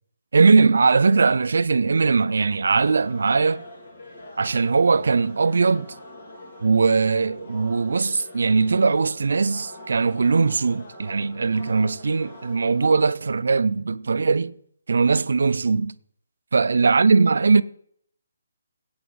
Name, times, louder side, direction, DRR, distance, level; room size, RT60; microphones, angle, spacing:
voice 1, 0.3-3.6 4.4-5.9 6.6-14.5 14.9-15.9 16.5-17.6, right 4 dB, 65° right, 0.5 m, -20 dB
sound 1, 2.8-13.0, left 1 dB, 35° left, 2.3 m, -44 dB
15.0 x 8.7 x 4.0 m
hypercardioid pair, 175°, 0 cm